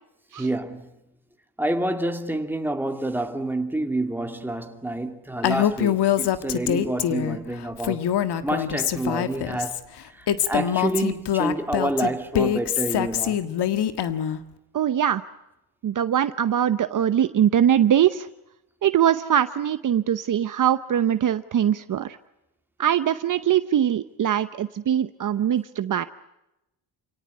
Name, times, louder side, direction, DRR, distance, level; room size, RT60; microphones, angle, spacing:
voice 1, 0.4-0.9 1.6-8.1 8.4-9.8 10.1-13.4, right 1 dB, 5° right, 2.7 m, -28 dB
Female speech woman speaking, 5.4-7.4 7.8-9.8 10.3-14.4, left 10 dB, 75° left, 1.7 m, -24 dB
voice 2, 14.7-15.2 15.8-18.3 18.8-22.2 22.8-26.0, right 10 dB, 50° right, 0.9 m, -22 dB
29.0 x 18.0 x 9.8 m
cardioid pair, 110°, 40 cm